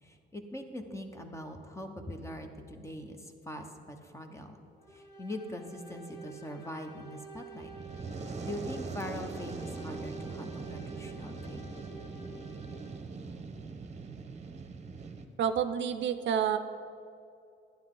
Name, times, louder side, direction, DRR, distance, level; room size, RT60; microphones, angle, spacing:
voice 1, 0.0-4.6 4.9-7.7 8.4-11.7, left 1 dB, 15° left, 5 dB, 1.1 m, -42 dB
sound 1, 4.8-13.2, right 4 dB, 55° left, 1.5 m, -49 dB
Fire, 7.6-15.3, right 4 dB, 35° right, 1.0 m, -42 dB
voice 2, 15.4-16.6, right 8 dB, 70° right, 10 dB, 0.6 m, -29 dB
11.5 x 10.0 x 3.8 m, 2.6 s
cardioid pair, 90°, 20 cm